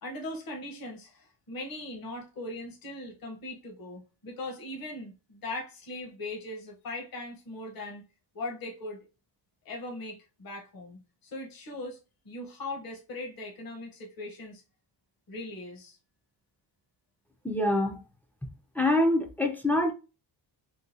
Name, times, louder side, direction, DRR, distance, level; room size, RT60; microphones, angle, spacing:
voice 1, 0.0-8.0 8.3-9.1 9.6-12.0 12.2-14.6 15.3-16.0, left 2 dB, 50° left, 1.1 m, -39 dB
voice 2, 17.4-18.0 18.8-19.9, left 1 dB, 5° left, 0.5 m, -25 dB
3.8 x 2.3 x 2.7 m
wide cardioid pair, 140°, 46 cm